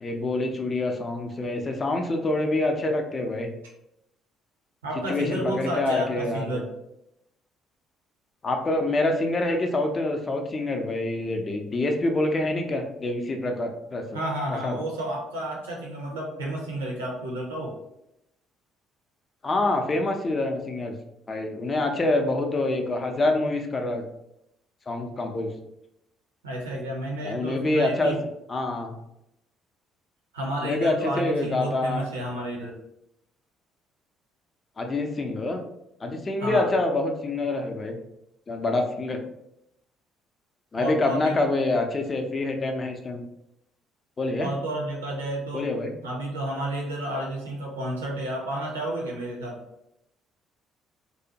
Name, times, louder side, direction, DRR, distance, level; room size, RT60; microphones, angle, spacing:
voice 1, 0.0-3.5 5.1-6.5 8.4-14.0 14.6-14.8 19.4-20.9 21.3-24.0 24.9-25.5 27.2-28.1 28.5-28.9 30.6-32.1 34.8-35.6 36.0-38.0 38.5-39.2 40.7-43.2 44.2-44.5 45.5-45.9, left 2 dB, 30° left, 4 dB, 0.4 m, -26 dB
voice 2, 4.8-6.7 14.1-17.8 26.4-28.2 30.3-32.8 36.4-36.7 40.8-41.5 44.4-45.7 46.0-49.6, right 1 dB, 80° right, -1 dB, 0.6 m, -31 dB
2.6 x 2.1 x 2.7 m, 0.82 s
figure-of-eight pair, 50°, 0 cm